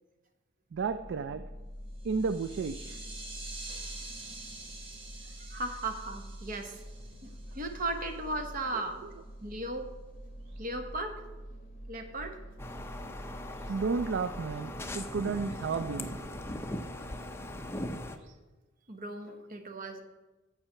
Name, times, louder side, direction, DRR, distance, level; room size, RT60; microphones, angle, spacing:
sound 1, 0.7-16.6, equal, 40° left, 1.3 m, -47 dB
voice 1, 0.7-1.4 2.0-3.0 3.5-3.6 10.6-10.7 13.6-16.2 18.2-18.3, right 5 dB, 60° right, 11 dB, 0.4 m, -32 dB
sound 2, 2.0-8.1, right 3 dB, 25° right, 1.3 m, -47 dB
voice 2, 5.5-6.8 7.2-9.0 9.4-9.9 10.6-11.2 11.9-12.4 18.9-20.0, right 2 dB, 45° right, 6 dB, 1.1 m, -36 dB
sound 3, 12.6-18.2, left 1 dB, 10° left, 0.6 m, -39 dB
8.8 x 7.2 x 5.6 m, 1.2 s
head